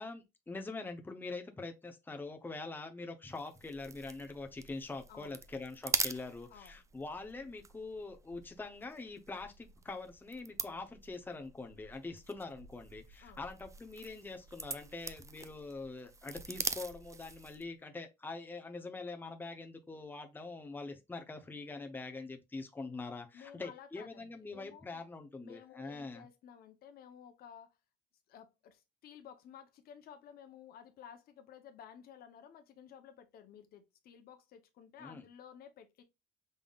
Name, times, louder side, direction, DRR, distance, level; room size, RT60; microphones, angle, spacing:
voice 1, 0.0-26.3 35.0-35.2, left 3 dB, 10° left, 0.7 m, -44 dB
sound 1, 3.3-17.7, right 4 dB, 20° right, 0.4 m, -43 dB
voice 2, 23.3-25.0 25.4-27.7 28.3-36.0, left 8 dB, 65° left, 0.8 m, -54 dB
5.3 x 3.5 x 2.3 m
cardioid pair, 110°, 17 cm